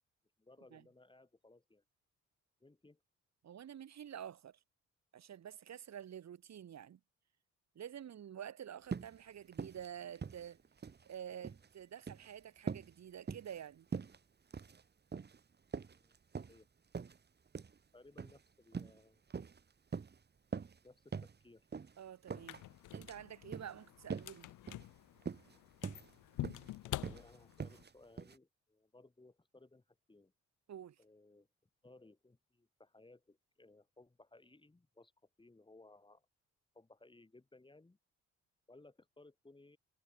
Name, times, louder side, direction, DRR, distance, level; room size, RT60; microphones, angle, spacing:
voice 1, 0.4-1.8 2.6-3.0 15.9-16.7 17.9-19.2 20.8-21.7 26.8-30.3 31.0-31.5 31.8-35.1 35.4-36.3 36.7-38.0 38.7-39.8, left 2 dB, 15° left, 4.6 m, -62 dB
voice 2, 3.4-4.6 5.1-7.0 7.8-10.6 11.1-13.9 22.0-22.6 22.9-24.5 30.7-31.0, right 9 dB, 60° right, 5.5 m, -49 dB
sound 1, 8.9-9.2 9.5-9.9 10.1-11.0 11.3-11.7 12.0-12.3 12.7-12.9 13.3-13.6 13.9-14.2 14.5-14.8 15.1-15.4 15.7-16.6 16.9-17.2 17.5-17.7 18.2-18.4 18.7-19.0 19.3-19.6 19.9-20.2 20.5-20.8 21.1-21.3 21.7-21.9 22.3-22.6 22.9-23.2 23.5-23.7 24.1-24.4 24.7-24.9 25.2-25.5 25.8-26.1 26.4-26.7 27.0-27.2 27.6-27.9 28.2-28.3, right 5 dB, 35° right, 2.3 m, -43 dB
sound 2, 22.3-27.8, left 16 dB, 80° left, 1.1 m, -47 dB
cardioid pair, 90°, 30 cm